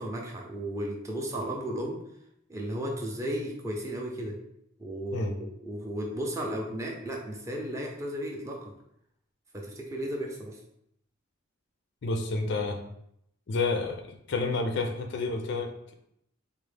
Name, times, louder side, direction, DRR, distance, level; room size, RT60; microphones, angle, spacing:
voice 1, 0.0-2.0 2.5-4.4 4.8-8.7 9.5-10.6, right 1 dB, 15° right, -1 dB, 0.5 m, -34 dB
voice 2, 12.0-12.8 13.5-15.9, left 3 dB, 60° left, 4 dB, 0.4 m, -30 dB
4.0 x 2.0 x 3.3 m, 0.75 s
head